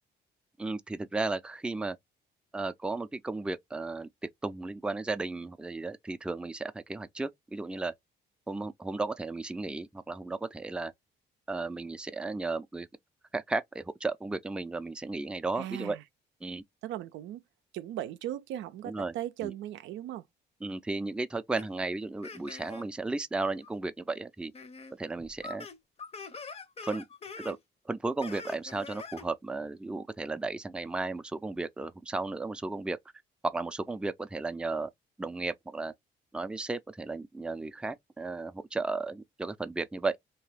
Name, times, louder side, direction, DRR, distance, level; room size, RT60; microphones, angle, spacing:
voice 1, 0.6-2.0 2.5-4.1 4.4-7.9 8.5-10.9 11.5-12.9 13.3-16.0 16.4-16.6 18.8-19.1 19.4-19.5 20.6-24.5 25.0-25.7 26.8-27.0 27.4-27.6 27.9-33.0 33.4-34.9 35.2-35.9 36.3-40.2, right 3 dB, 5° right, 0.4 m, -34 dB
voice 2, 15.6-16.0 16.8-17.4 17.7-20.2, right 12 dB, 75° right, 0.4 m, -38 dB
sound 1, 21.6-21.7 22.2-22.9 23.6-23.7 24.5-24.9 25.2-27.6 28.2-29.3, left 4 dB, 30° left, 0.7 m, -44 dB
2.9 x 2.2 x 3.2 m
supercardioid pair, 75°, 19 cm